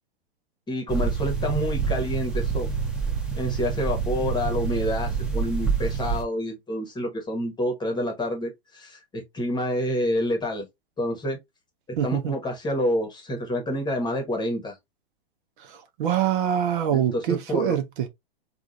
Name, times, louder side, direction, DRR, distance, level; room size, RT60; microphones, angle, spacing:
voice 1, 0.7-2.7 3.4-9.0 9.3-10.7 11.0-11.4 12.0-14.7 16.9-17.8, equal, 15° left, 1.2 m, -28 dB
sound 1, 0.9-6.2, right 5 dB, 5° right, 0.9 m, -27 dB
voice 2, 12.0-12.4 15.6-18.1, right 9 dB, 55° right, 0.8 m, -25 dB
3.7 x 2.4 x 2.3 m
hypercardioid pair, 115°, 31 cm